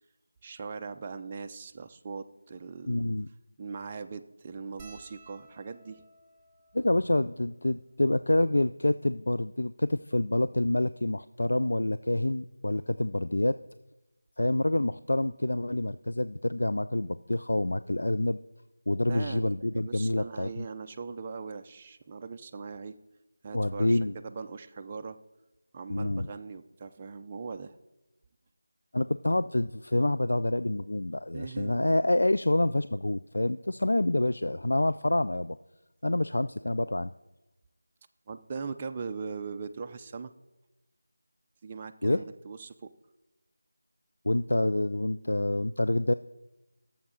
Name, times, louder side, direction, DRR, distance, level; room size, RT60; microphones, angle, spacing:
voice 1, 0.4-3.1 3.6-6.0 19.1-23.0 23.4-25.2 25.7-27.8 31.3-31.9 38.3-40.3 41.6-42.9, right 5 dB, 20° right, 6 dB, 0.4 m, -40 dB
voice 2, 2.9-3.3 6.7-13.6 14.4-18.4 18.9-20.6 23.5-24.1 25.9-26.3 28.9-35.6 36.0-37.1 42.0-42.2 44.2-46.1, left 1 dB, 75° left, 14 dB, 0.3 m, -27 dB
sound 1, 4.8-9.4 10.1-10.2 10.4-10.6 11.9-12.1 13.6-13.7 13.9-14.1, right 2 dB, 5° right, 1.5 m, -58 dB
16.5 x 7.1 x 3.8 m, 1.0 s
figure-of-eight pair, 170°, 0 cm